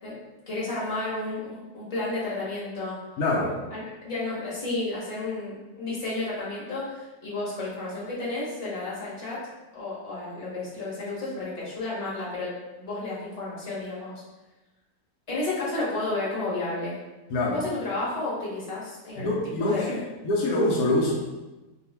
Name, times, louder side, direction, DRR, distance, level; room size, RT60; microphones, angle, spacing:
voice 1, 0.5-2.9 3.4-9.4 9.7-14.2 15.3-17.0 17.5-20.0, left 2 dB, 25° left, -8 dB, 1.1 m, -32 dB
voice 2, 3.2-3.5 17.3-17.6 19.2-21.1, left 2 dB, 75° left, -3 dB, 1.1 m, -25 dB
2.8 x 2.3 x 4.2 m, 1.1 s
omnidirectional pair, 1.6 m